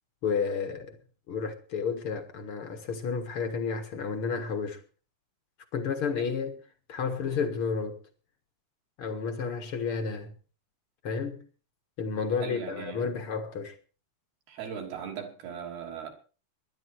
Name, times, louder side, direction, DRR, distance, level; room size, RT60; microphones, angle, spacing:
voice 1, 0.2-1.0 1.3-4.8 5.7-6.6 6.9-8.0 9.0-10.3 11.0-11.4 12.0-13.8, left 5 dB, 55° left, 1.6 m, -31 dB
voice 2, 12.4-13.1 14.5-16.1, right 7 dB, 65° right, 4.9 m, -39 dB
21.0 x 11.0 x 4.6 m
omnidirectional pair, 4.8 m